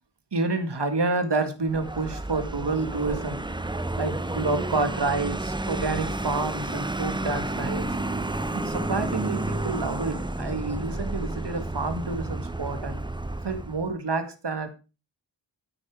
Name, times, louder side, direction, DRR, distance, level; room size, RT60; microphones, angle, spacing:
voice 1, 0.3-3.4 4.0-8.0 8.5-13.0 13.4-14.7, right 3 dB, 65° right, 8 dB, 2.1 m, -29 dB
Vehicle, 1.6-13.9, right 2 dB, 10° right, 0.7 m, -31 dB
10.0 x 8.7 x 5.0 m, 0.32 s
wide cardioid pair, 55°, 45 cm